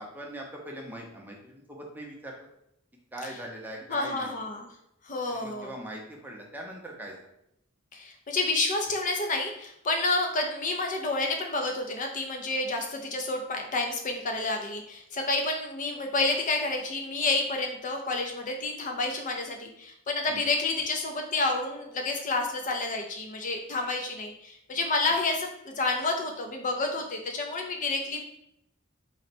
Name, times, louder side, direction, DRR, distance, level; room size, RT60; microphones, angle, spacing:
voice 1, 0.0-2.5 3.1-4.4 5.3-7.2 20.3-20.4, right 1 dB, 10° right, -1 dB, 0.6 m, -41 dB
voice 2, 3.9-4.7 5.0-5.7 7.9-28.2, left 3 dB, 35° left, 3 dB, 0.4 m, -29 dB
4.0 x 2.1 x 4.2 m, 0.80 s
head